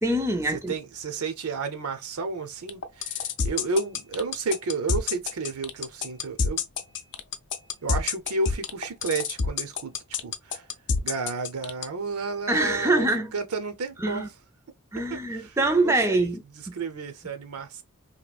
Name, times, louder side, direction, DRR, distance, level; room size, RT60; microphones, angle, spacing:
voice 1, 0.0-0.8 12.5-13.3 14.0-14.3 14.9-16.7, right 2 dB, 10° right, 0.4 m, -24 dB
voice 2, 0.7-6.6 7.8-9.9 10.2-10.6 11.0-14.3 15.0-16.3 16.7-17.8, right 3 dB, 85° right, 0.7 m, -32 dB
sound 1, 2.7-11.8, left 5 dB, 55° left, 0.5 m, -27 dB
3.0 x 2.4 x 2.3 m
head